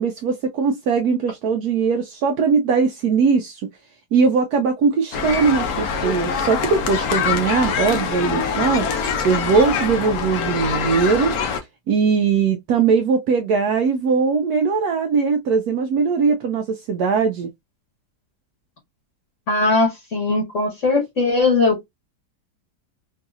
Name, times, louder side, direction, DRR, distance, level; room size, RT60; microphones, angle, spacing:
voice 1, 0.0-3.6 4.1-8.9 9.2-11.3 11.9-17.5, right 5 dB, 70° right, 1.0 m, -20 dB
sound 1, 5.1-11.6, left 6 dB, 65° left, 1.2 m, -24 dB
voice 2, 19.5-21.9, left 3 dB, 50° left, 1.3 m, -19 dB
3.9 x 2.7 x 2.3 m
omnidirectional pair, 1.8 m